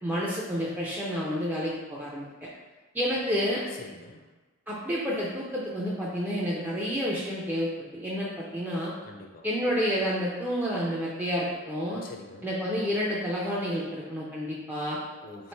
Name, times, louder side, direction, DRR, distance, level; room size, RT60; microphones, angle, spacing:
voice 1, 0.0-2.5 2.9-3.6 4.7-8.9 9.4-12.0 12.4-15.0, equal, 10° right, -6 dB, 0.4 m, -30 dB
voice 2, 3.7-4.3 9.0-9.5 12.0-12.5 15.1-15.5, left 3 dB, 45° left, 2 dB, 0.5 m, -45 dB
3.1 x 2.9 x 4.4 m, 1.2 s
head